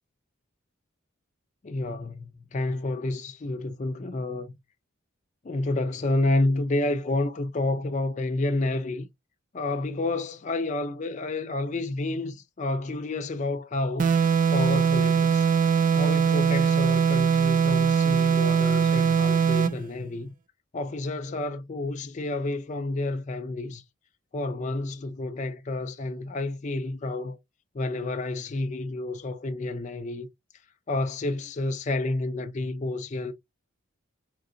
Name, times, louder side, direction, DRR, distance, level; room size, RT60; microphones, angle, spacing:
voice 1, 1.6-4.5 5.4-9.1 9.5-14.1 14.5-15.5 15.9-20.3 20.7-23.8 24.3-27.4 27.7-30.3 30.9-33.3, left 2 dB, 35° left, 0.4 m, -29 dB
sound 1, 14.0-19.8, right 7 dB, 40° right, 0.3 m, -21 dB
3.8 x 2.9 x 2.5 m
head